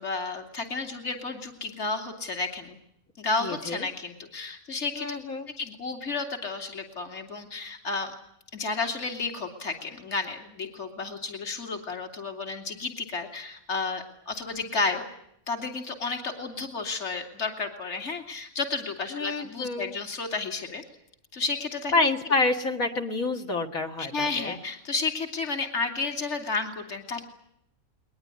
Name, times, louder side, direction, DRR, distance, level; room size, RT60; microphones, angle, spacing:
voice 1, 0.0-2.8 3.2-5.1 5.6-8.1 8.5-15.0 15.5-20.8 21.3-21.9 24.0-27.2, left 4 dB, 55° left, 5 dB, 3.0 m, -32 dB
voice 2, 3.4-3.9 5.0-5.5 19.1-19.9 21.9-24.6, left 3 dB, 75° left, 3 dB, 2.3 m, -28 dB
21.5 x 20.5 x 9.7 m, 0.75 s
omnidirectional pair, 1.5 m